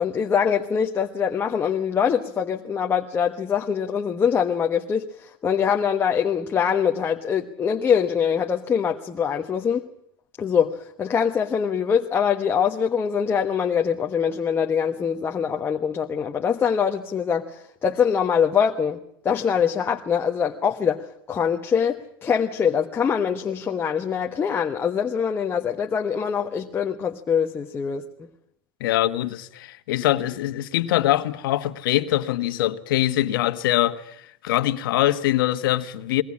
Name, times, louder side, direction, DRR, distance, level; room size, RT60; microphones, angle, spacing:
voice 1, 0.0-9.9 10.4-19.0 19.2-28.0, left 7 dB, 20° left, 1.2 m, -23 dB
voice 2, 28.8-34.2 34.4-36.2, left 14 dB, 75° left, 1.4 m, -23 dB
21.5 x 18.5 x 8.5 m
supercardioid pair, 130°, 12 cm